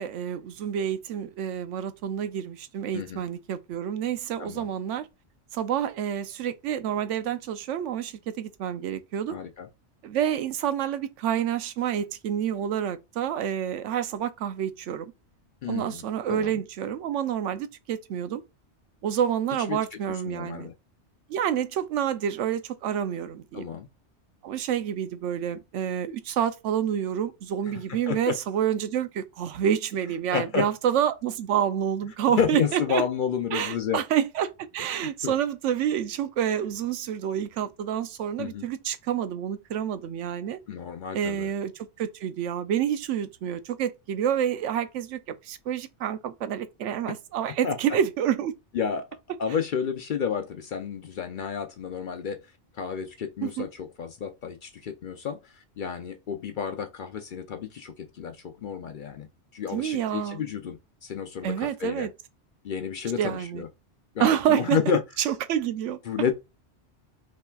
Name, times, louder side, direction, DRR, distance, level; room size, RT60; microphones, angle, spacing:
voice 1, 0.0-5.1 5.5-9.4 10.0-15.1 15.7-18.4 19.0-20.7 21.3-23.7 24.4-33.0 33.5-40.6 41.1-48.5 53.4-53.7 59.7-60.4 61.4-62.1 63.2-63.6 64.2-66.0, right 9 dB, 90° right, 0.9 m, -28 dB
voice 2, 4.4-4.7 9.3-9.7 15.6-16.0 16.3-16.6 19.7-20.0 20.3-20.7 23.5-23.9 27.7-28.4 30.3-30.7 32.4-34.0 35.2-35.3 38.4-38.7 40.7-41.5 47.6-47.8 48.7-49.1 49.4-52.4 52.7-62.1 62.6-63.7 64.1-65.0 66.1-66.3, left 7 dB, 60° left, 0.5 m, -31 dB
5.5 x 3.1 x 2.3 m
omnidirectional pair, 1.2 m